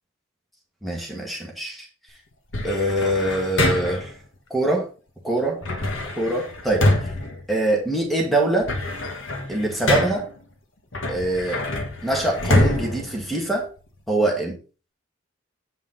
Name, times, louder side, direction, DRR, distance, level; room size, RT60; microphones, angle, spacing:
voice 1, 0.8-1.9 2.6-4.1 4.5-4.9 5.2-5.6 6.2-7.1 7.5-8.7 9.5-10.3 11.1-11.6 12.0-13.7 14.1-14.5, right 2 dB, ahead, -1 dB, 2.0 m, -24 dB
sound 1, 2.5-4.2 5.6-8.1 8.4-10.4 10.9-13.9, left 1 dB, 70° left, 1.6 m, -25 dB
8.3 x 5.5 x 4.1 m, 0.35 s
head